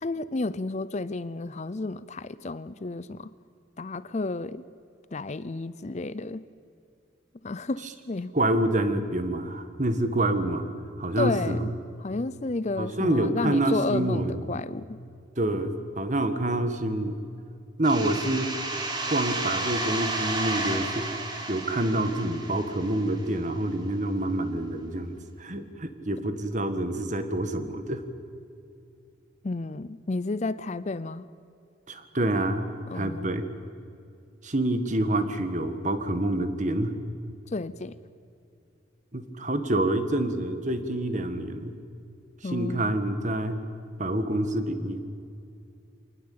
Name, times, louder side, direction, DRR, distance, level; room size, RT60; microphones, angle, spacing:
voice 1, 0.0-3.3 3.8-4.6 5.1-6.4 7.4-8.3 11.2-11.7 12.0-15.0 29.4-31.2 32.9-33.3 37.5-38.0 42.4-42.9, left 3 dB, 35° left, 16 dB, 0.5 m, -31 dB
voice 2, 8.3-10.6 11.0-11.6 12.8-14.6 15.4-17.2 17.8-18.5 19.1-21.1 21.5-28.0 31.9-33.4 34.4-37.0 39.1-41.7 42.4-43.6 44.0-45.0, right 1 dB, 40° right, 9 dB, 1.8 m, -27 dB
sound 1, 17.8-23.3, right 2 dB, 20° right, 2.6 m, -32 dB
25.5 x 19.5 x 8.7 m, 2.5 s
head